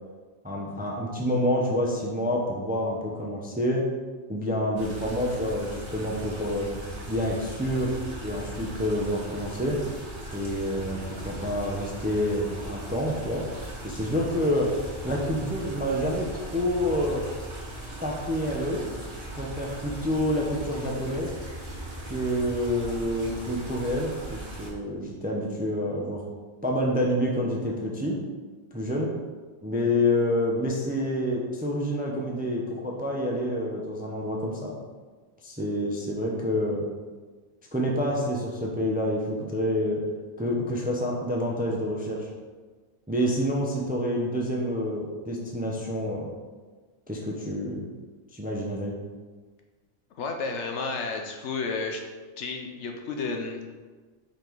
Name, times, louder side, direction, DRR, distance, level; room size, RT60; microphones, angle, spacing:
voice 1, 0.4-3.9 4.3-6.7 7.1-7.9 8.2-9.8 10.3-13.4 13.8-14.7 15.0-17.2 18.0-18.8 19.3-21.3 22.1-26.2 26.6-28.2 28.7-29.1 29.6-34.7 35.4-36.9 37.7-40.0 40.4-42.3 43.1-46.3 47.1-47.8 48.3-49.0, equal, 10° right, -2 dB, 0.5 m, -28 dB
sound 1, 4.8-24.7, right 1 dB, 50° right, 1.6 m, -38 dB
voice 2, 50.2-52.0 52.4-53.8, left 4 dB, 65° left, 3 dB, 0.9 m, -32 dB
5.2 x 4.1 x 4.5 m, 1.4 s
omnidirectional pair, 1.4 m